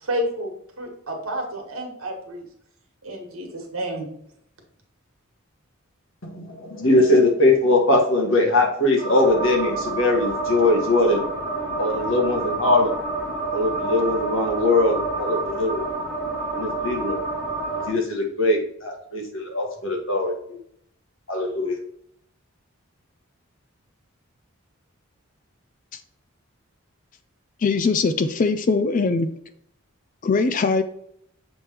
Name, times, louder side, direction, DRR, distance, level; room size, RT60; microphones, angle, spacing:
voice 1, 0.0-2.4 3.0-4.0, equal, 75° right, 1 dB, 1.6 m, -30 dB
voice 2, 6.2-11.2 11.8-12.9 13.5-15.9 16.5-17.2 17.9-20.6 21.3-21.8, left 2 dB, 60° left, 1 dB, 1.5 m, -21 dB
sound 1, 9.0-17.9, right 3 dB, 5° left, 1.3 m, -28 dB
voice 3, 27.6-29.3 30.2-30.8, left 4 dB, 40° left, 10 dB, 0.3 m, -21 dB
7.0 x 3.3 x 4.4 m, 0.70 s
head